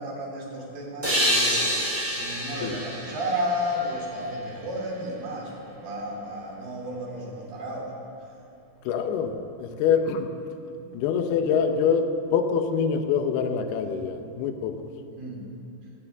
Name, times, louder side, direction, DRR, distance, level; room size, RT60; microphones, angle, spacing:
voice 1, 0.0-1.7 2.1-7.9 15.2-15.5, equal, 60° right, -3 dB, 4.5 m, -32 dB
sound 1, 1.0-4.5, equal, 10° right, 3.4 m, -27 dB
voice 2, 8.9-10.3 10.9-14.8, left 6 dB, 85° left, 6 dB, 2.9 m, -25 dB
21.5 x 18.0 x 3.5 m, 2.6 s
omnidirectional pair, 4.6 m